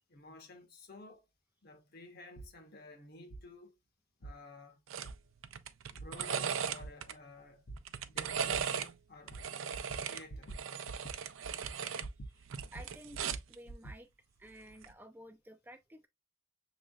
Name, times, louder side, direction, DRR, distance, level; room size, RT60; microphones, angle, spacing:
voice 1, 0.1-1.3 1.6-3.8 4.2-4.8 5.9-7.7 8.1-9.4 10.0-10.7 11.4-11.6, left 2 dB, 50° left, 1.1 m, -53 dB
sound 1, 2.4-2.5 3.3-3.4 4.2-4.3 5.0-5.1 6.0-6.1 6.8-6.9 7.7-7.8 8.5-8.6 9.3-9.4 9.7-10.0 10.3-10.6 10.9-11.2 11.4-12.3 12.6-14.0, right 2 dB, 90° left, 1.1 m, -45 dB
Adding Machine, 4.9-5.1 5.4-7.1 7.8-8.9 9.3-12.1 12.4-13.5 14.7-14.9, right 7 dB, 85° right, 0.5 m, -37 dB
voice 2, 12.7-13.2 13.5-14.1 14.4-16.1, equal, 10° right, 0.4 m, -53 dB
6.3 x 3.1 x 2.3 m
head